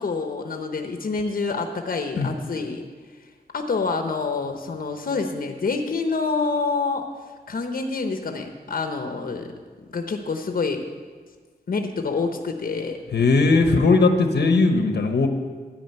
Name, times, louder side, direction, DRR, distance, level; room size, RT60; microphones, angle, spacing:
voice 1, 0.0-2.9 3.5-7.1 7.5-9.5 9.9-10.9 11.7-13.0, left 4 dB, 60° left, 5 dB, 0.9 m, -27 dB
voice 2, 13.1-15.3, left 3 dB, 85° left, 6 dB, 1.1 m, -18 dB
13.0 x 5.0 x 9.0 m, 1.5 s
wide cardioid pair, 125°, 17 cm